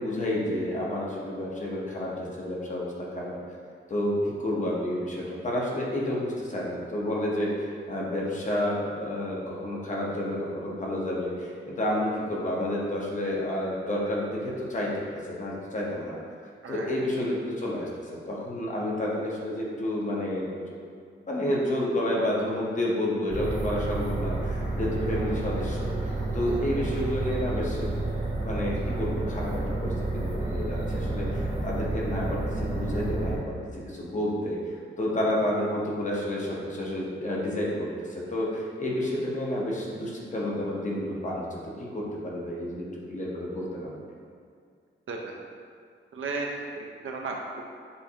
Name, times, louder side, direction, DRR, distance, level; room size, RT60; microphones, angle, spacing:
voice 1, 0.0-3.3 3.9-16.2 16.7-20.5 21.3-34.6 35.0-42.8 43.1-44.0, left 1 dB, 35° left, -4 dB, 0.8 m, -30 dB
sound 1, 23.3-33.4, right 2 dB, 35° right, 0.8 m, -30 dB
voice 2, 46.1-47.6, right 3 dB, 75° right, 0 dB, 0.6 m, -34 dB
6.8 x 2.5 x 2.8 m, 2.2 s
wide cardioid pair, 170°, 21 cm